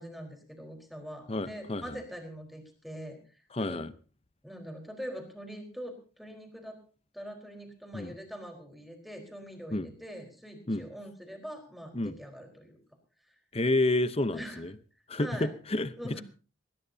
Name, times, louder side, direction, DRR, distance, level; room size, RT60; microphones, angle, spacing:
voice 1, 0.0-3.8 4.4-6.8 7.1-12.8 13.3-13.4 14.3-14.7 15.2-15.5 16.0-16.2, equal, ahead, 4 dB, 4.2 m, -43 dB
voice 2, 1.3-2.0 3.5-3.9 7.9-8.1 9.7-9.9 10.7-10.8 11.9-12.1 13.5-14.7 15.1-16.2, left 2 dB, 30° left, 14 dB, 0.8 m, -30 dB
20.5 x 20.5 x 2.8 m, 0.37 s
head